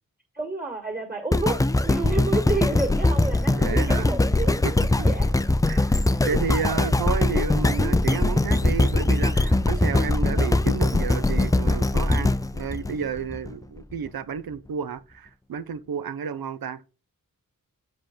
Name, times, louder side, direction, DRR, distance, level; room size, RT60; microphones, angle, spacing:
voice 1, 0.3-1.6 1.8-4.6 4.9-5.3 6.0-6.4, right 2 dB, 25° right, 2.1 m, -30 dB
sound 1, 1.3-13.5 14.1-14.2, left 2 dB, 10° left, 0.3 m, -22 dB
voice 2, 3.5-4.1 4.5-4.7 5.7-16.8, right 7 dB, 85° right, 0.6 m, -31 dB
7.9 x 3.4 x 5.2 m
wide cardioid pair, 70°, 35 cm